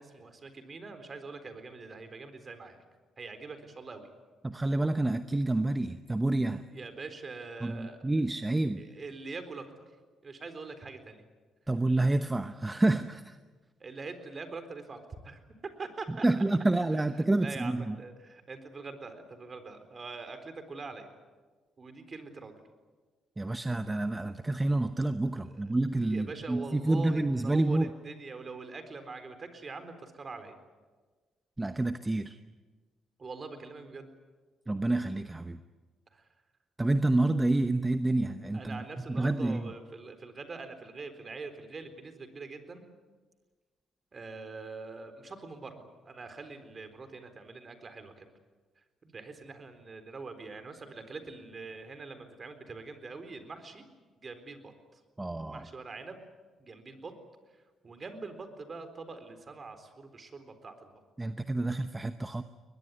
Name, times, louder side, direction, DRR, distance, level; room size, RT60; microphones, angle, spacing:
voice 1, 0.0-2.8 3.2-4.1 6.7-8.0 8.8-9.8 10.2-11.2 13.8-15.4 15.8-16.4 16.9-21.1 21.8-22.6 25.4-25.5 26.1-30.6 33.2-34.1 36.1-36.3 38.5-42.8 44.1-48.3 49.0-53.8 54.2-55.0 55.5-56.2 56.6-57.1 57.8-61.0, right 4 dB, 35° right, 8 dB, 4.0 m, -44 dB
voice 2, 4.4-6.6 7.6-8.8 11.7-13.4 16.1-18.0 23.4-27.9 31.6-32.4 34.7-35.6 36.8-39.7 55.2-55.7 61.2-62.4, right 2 dB, 15° right, 9 dB, 0.9 m, -28 dB
22.0 x 21.0 x 9.7 m, 1.4 s
cardioid pair, 90°, 0 cm